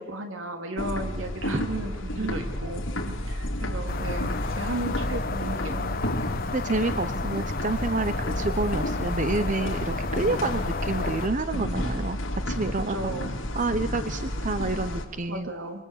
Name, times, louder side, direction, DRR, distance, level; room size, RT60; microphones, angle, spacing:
voice 1, 0.0-2.9 3.3-6.2 12.9-13.3 15.3-15.9, right 1 dB, 75° right, 5 dB, 3.2 m, -34 dB
sound 1, 0.8-15.0, left 1 dB, 70° left, 4.6 m, -31 dB
voice 2, 2.2-2.5 3.1-3.3 6.5-12.2 12.5-13.0 13.5-15.5, right 3 dB, 40° right, 11 dB, 0.8 m, -29 dB
sound 2, 3.9-11.3, left 3 dB, 45° left, 1.1 m, -32 dB
25.5 x 25.5 x 8.5 m, 1.2 s
head